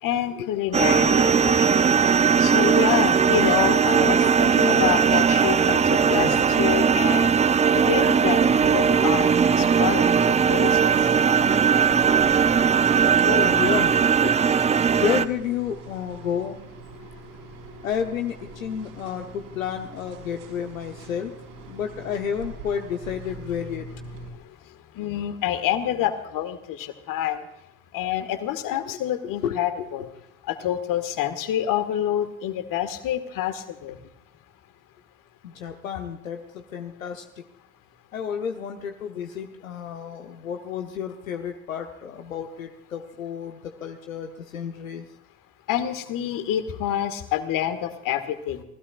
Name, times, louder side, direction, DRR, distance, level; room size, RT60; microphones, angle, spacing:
voice 1, 0.0-1.9 2.4-10.9 24.9-27.4 27.9-30.1 30.5-34.0 45.7-48.6, left 11 dB, 55° left, 10 dB, 1.8 m, -27 dB
sound 1, 0.7-15.2, right 6 dB, 15° right, 0.5 m, -19 dB
sound 2, 8.3-24.3, right 1 dB, 75° right, 5.3 m, -41 dB
voice 2, 13.2-14.3 15.0-16.6 17.8-21.3 21.7-23.8 29.4-29.9 35.4-37.4 38.1-45.1, left 8 dB, 85° left, 5 dB, 1.0 m, -31 dB
28.0 x 16.5 x 2.5 m, 0.88 s
hypercardioid pair, 60°, 40 cm